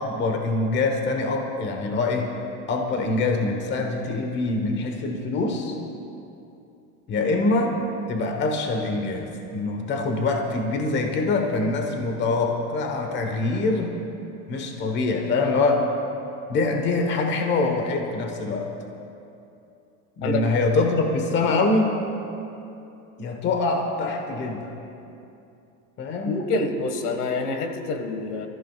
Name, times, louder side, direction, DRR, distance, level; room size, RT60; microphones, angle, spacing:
voice 1, 0.0-2.3 2.7-5.8 7.1-7.8 8.1-13.9 14.5-15.9 16.5-18.7 20.2-21.9 23.2-24.7 26.0-26.4, left 3 dB, 25° left, 3 dB, 1.1 m, -24 dB
voice 2, 26.2-28.5, left 3 dB, 80° left, 6 dB, 1.7 m, -27 dB
25.5 x 14.5 x 2.4 m, 2.7 s
supercardioid pair, 160°, 44 cm